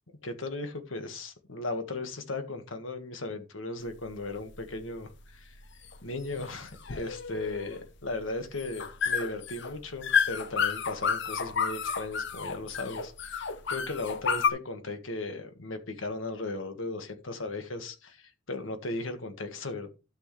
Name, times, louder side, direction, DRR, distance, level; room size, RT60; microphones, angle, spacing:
voice 1, 0.2-5.6 6.0-19.9, left 2 dB, 85° left, 7 dB, 1.6 m, -37 dB
sound 1, 3.8-14.5, left 6 dB, 65° left, 0.8 m, -31 dB
12.0 x 6.3 x 3.2 m, 0.31 s
head